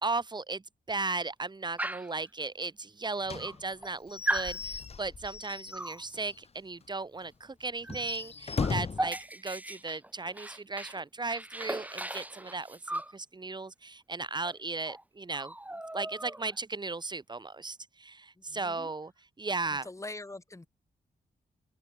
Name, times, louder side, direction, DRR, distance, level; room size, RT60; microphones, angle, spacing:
voice 1, 0.0-15.5 15.9-19.1 19.4-19.9, right 3 dB, 25° right, 2.1 m, -36 dB
Dog, 1.8-2.2 3.0-3.1 3.4-3.9 4.3-4.6 5.7-6.0 7.8-8.0 8.3-11.0 11.3-13.2 14.4-14.6 14.9-15.0 15.3-16.6, right 1 dB, 10° right, 3.5 m, -37 dB
Slam / Squeak / Wood, 3.3-6.5 6.8-6.9 7.2-7.3 7.8-9.1, left 5 dB, 40° left, 1.6 m, -37 dB
voice 2, 18.4-18.9 19.7-20.7, left 2 dB, 20° left, 6.1 m, -44 dB
open air
wide cardioid pair, 115°, 16 cm